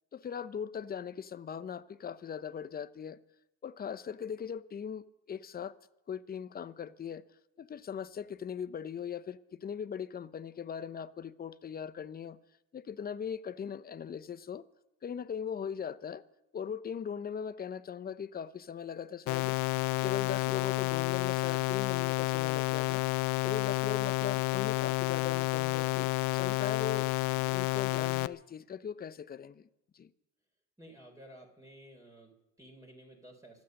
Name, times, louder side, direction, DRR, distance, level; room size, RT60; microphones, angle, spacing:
voice 1, 0.1-3.2 3.6-5.7 6.1-7.2 7.6-12.4 12.7-14.6 15.0-16.2 16.5-19.6 20.0-23.0 23.4-27.1 27.4-29.7 29.9-30.1, left 7 dB, 25° left, 0.8 m, -39 dB
sound 1, 19.3-28.3, left 19 dB, 65° left, 0.6 m, -30 dB
voice 2, 30.8-33.6, right 1 dB, 10° right, 3.7 m, -54 dB
25.0 x 8.5 x 6.5 m
supercardioid pair, 100°, 33 cm